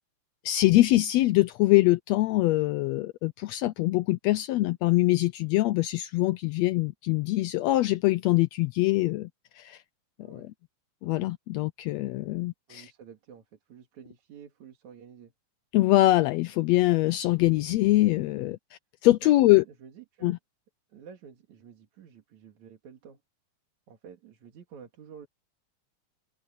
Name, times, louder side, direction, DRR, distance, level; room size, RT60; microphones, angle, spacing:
voice 1, 0.4-9.3 9.6-9.8 10.3-10.5 11.0-12.8 15.7-18.6 19.0-19.6 20.2-20.4, left 17 dB, 80° left, 1.6 m, -23 dB
voice 2, 10.2-10.5 12.7-15.3 19.2-20.4 20.9-23.2 23.9-25.3, right 7 dB, 75° right, 3.4 m, -49 dB
omnidirectional pair, 3.3 m